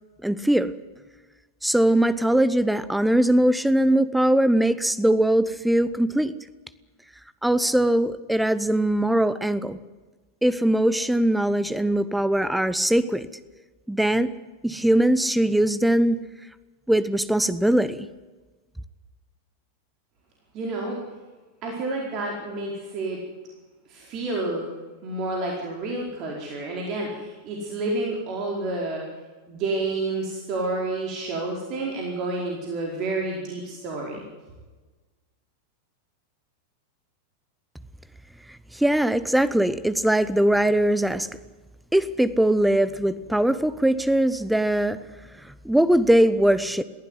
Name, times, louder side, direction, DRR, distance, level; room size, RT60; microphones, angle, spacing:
voice 1, 0.2-0.7 1.6-6.3 7.4-9.8 10.4-13.3 13.9-14.3 14.6-16.2 16.9-18.1 38.7-41.3 41.9-45.0 45.4-46.8, right 1 dB, 5° right, 15 dB, 1.0 m, -21 dB
voice 2, 20.5-21.0 21.6-23.2 23.9-24.7 25.0-29.0 29.5-34.2, right 2 dB, 35° right, -1 dB, 4.7 m, -29 dB
22.5 x 15.5 x 9.6 m, 1.3 s
figure-of-eight pair, 90°, 0 cm